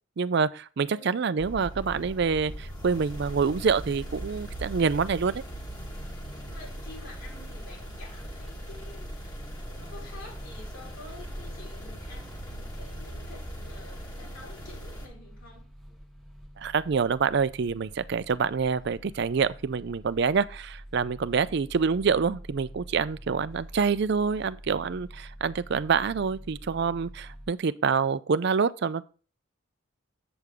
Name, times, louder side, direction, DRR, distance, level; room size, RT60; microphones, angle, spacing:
voice 1, 0.2-5.4 16.6-29.0, right 5 dB, 55° right, 0.4 m, -26 dB
voice 2, 0.9-1.2 6.4-15.7, left 2 dB, 80° left, 4.4 m, -49 dB
sound 1, 1.4-15.1, equal, 20° left, 1.5 m, -39 dB
sound 2, 15.0-27.5, equal, ahead, 1.1 m, -47 dB
7.9 x 6.6 x 3.6 m
head